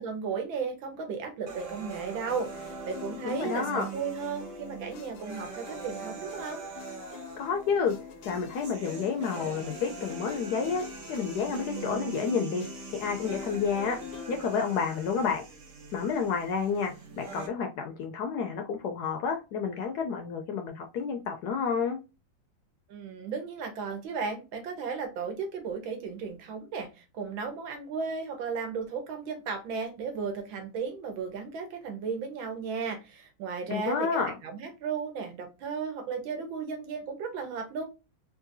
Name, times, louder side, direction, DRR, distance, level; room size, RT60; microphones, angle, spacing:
voice 1, 0.0-6.6 22.9-37.8, right 5 dB, 85° right, 1.7 m, -35 dB
sound 1, 1.5-17.5, right 6 dB, 60° right, 0.8 m, -43 dB
sound 2, 1.9-14.4, left 8 dB, 90° left, 1.4 m, -45 dB
voice 2, 3.2-3.9 7.4-7.9 8.2-12.6 12.9-14.0 14.3-15.4 15.9-22.0 33.7-34.3, left 6 dB, 75° left, 1.0 m, -30 dB
3.7 x 2.6 x 2.5 m
omnidirectional pair, 2.1 m